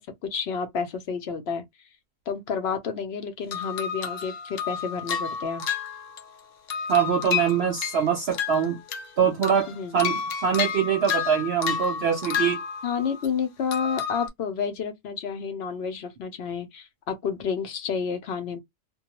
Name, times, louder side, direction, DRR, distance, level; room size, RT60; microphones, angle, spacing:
voice 1, 0.0-1.6 2.3-5.6 9.7-10.0 12.8-18.6, left 6 dB, 60° left, 0.8 m, -30 dB
sound 1, 3.5-6.4 6.7-9.1 9.4-13.3 13.7-14.3, left 7 dB, 75° left, 1.1 m, -31 dB
voice 2, 6.9-8.8 9.2-12.6, right 7 dB, 60° right, 0.8 m, -24 dB
2.2 x 2.2 x 2.9 m
omnidirectional pair, 1.3 m